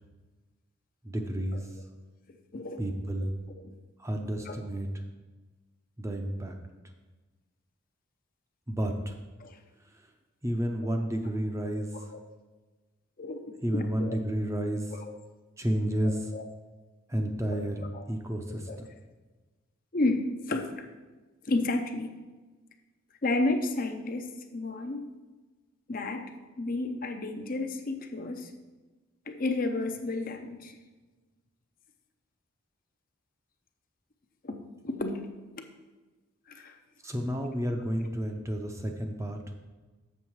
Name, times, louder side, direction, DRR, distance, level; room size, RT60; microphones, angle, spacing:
voice 1, 1.0-1.6 2.8-3.3 4.0-4.9 6.0-6.6 8.7-9.1 10.4-11.9 13.6-14.8 15.6-16.2 17.1-18.6 37.0-39.4, equal, 15° right, 3 dB, 0.6 m, -31 dB
voice 2, 2.5-2.8 3.2-3.3 3.5-3.7 4.4-4.6 9.4-9.6 10.8-10.9 11.7-12.2 13.2-13.4 13.7-14.2 14.9-15.1 16.0-16.5 17.5-18.0 18.5-18.8 19.9-20.9 21.4-22.1 23.2-25.1 25.9-26.3 26.6-28.5 29.3-30.8 34.4-35.3 36.5-36.8, left 2 dB, 40° left, 6 dB, 0.6 m, -32 dB
7.2 x 6.7 x 4.7 m, 1.3 s
head